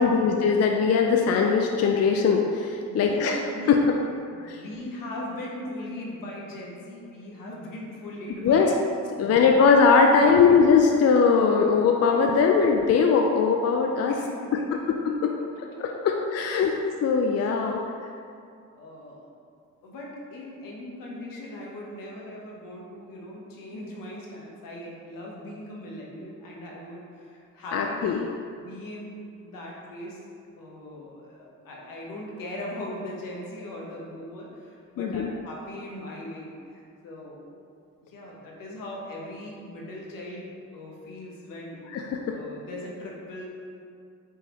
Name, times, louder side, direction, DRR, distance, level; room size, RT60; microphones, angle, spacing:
voice 1, 0.0-3.4 3.7-3.9 4.4-4.6 8.4-8.7 9.2-14.2 15.2-15.3 15.8-16.8 17.0-17.8 27.7-28.2 35.0-35.3 41.9-42.3, left 5 dB, 50° left, 2 dB, 0.4 m, -20 dB
voice 2, 2.9-3.8 4.3-8.8 9.2-9.7 10.2-10.5 12.1-12.6 14.0-14.7 16.5-16.6 17.6-17.8 18.7-19.3 19.8-28.3 28.6-29.1 29.4-30.2 30.6-37.6 38.1-42.0 42.3-43.4, left 1 dB, 75° left, -3 dB, 1.0 m, -39 dB
4.5 x 3.6 x 2.9 m, 2.4 s
supercardioid pair, 60°, 33 cm